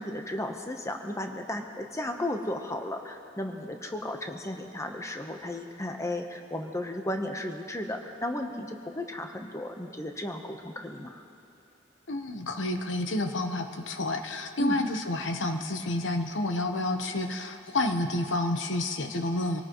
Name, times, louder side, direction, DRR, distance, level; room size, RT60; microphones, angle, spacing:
voice 1, 0.0-11.2 14.6-14.8, left 1 dB, 15° left, 4 dB, 0.9 m, -34 dB
voice 2, 12.1-19.6, left 2 dB, 85° left, 6 dB, 1.0 m, -29 dB
26.0 x 18.0 x 3.1 m, 2.7 s
head